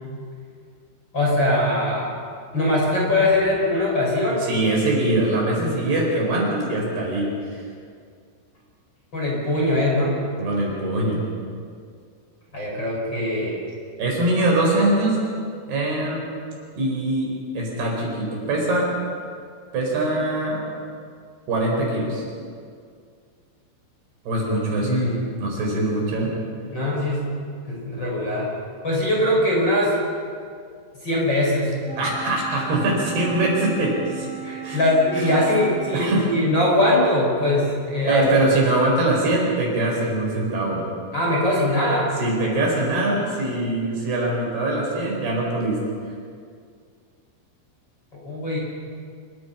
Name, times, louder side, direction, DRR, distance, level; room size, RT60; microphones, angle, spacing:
voice 1, 1.1-2.1 2.5-4.4 9.1-10.1 12.5-13.6 24.8-25.5 26.7-27.3 27.7-28.5 28.8-29.9 31.0-31.7 34.4-38.3 41.1-42.1 48.1-48.6, left 1 dB, 20° left, -4 dB, 6.3 m, -21 dB
voice 2, 4.4-7.6 10.4-11.2 14.0-15.2 15.7-16.2 16.8-17.3 17.5-18.9 19.7-20.6 21.5-22.2 24.3-25.0 25.4-26.3 31.9-34.3 34.6-34.8 35.2-35.3 35.9-36.3 38.1-40.8 42.2-45.8, right 2 dB, 55° right, -1 dB, 6.4 m, -22 dB
Wind instrument woodwind instrument, 31.8-36.3, right 6 dB, ahead, 1.4 m, -35 dB
27.0 x 23.5 x 5.7 m, 2.2 s
omnidirectional pair, 5.7 m